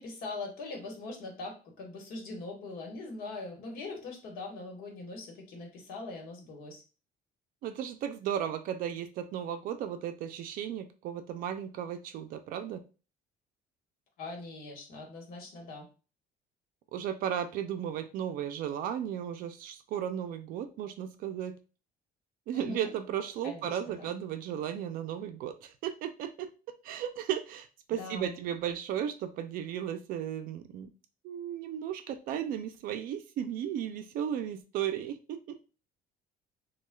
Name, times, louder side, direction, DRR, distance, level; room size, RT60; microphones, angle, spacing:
voice 1, 0.0-6.8 14.2-15.9 22.5-22.9 23.4-24.1 28.0-28.3, left 3 dB, 60° left, 1 dB, 1.4 m, -41 dB
voice 2, 7.6-12.8 16.9-21.5 22.5-26.5 26.8-30.9 31.2-35.6, right 9 dB, 60° right, 8 dB, 0.5 m, -35 dB
6.1 x 2.2 x 2.2 m, 0.34 s
cardioid pair, 170°, 17 cm